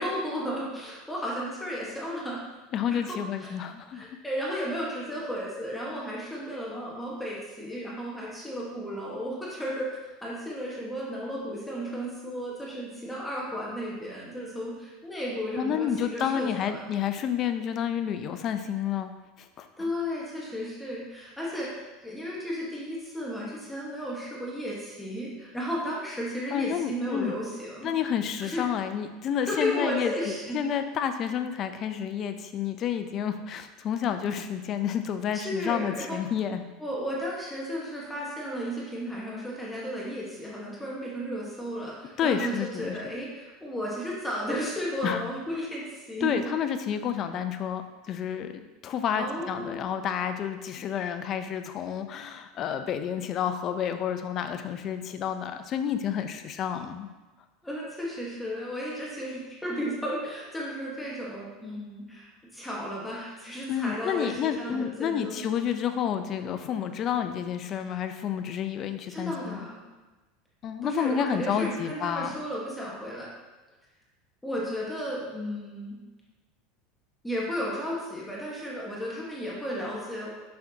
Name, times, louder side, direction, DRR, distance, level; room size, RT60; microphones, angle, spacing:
voice 1, 0.0-2.4 2.9-3.5 3.9-9.9 10.2-16.8 19.8-27.9 28.4-28.7 29.5-30.6 35.3-36.2 36.8-46.3 49.2-49.8 57.6-65.4 69.1-69.8 70.8-73.3 74.4-76.0 77.2-80.3, equal, 5° left, -5 dB, 1.3 m, -34 dB
voice 2, 2.7-4.0 15.6-19.1 19.4-19.7 26.5-27.3 27.8-30.1 30.5-36.6 42.2-43.0 45.0-45.3 46.2-57.1 63.7-69.6 70.6-72.3, left 8 dB, 40° left, 8 dB, 0.5 m, -30 dB
6.4 x 5.8 x 2.8 m, 1.2 s
supercardioid pair, 120°, 0 cm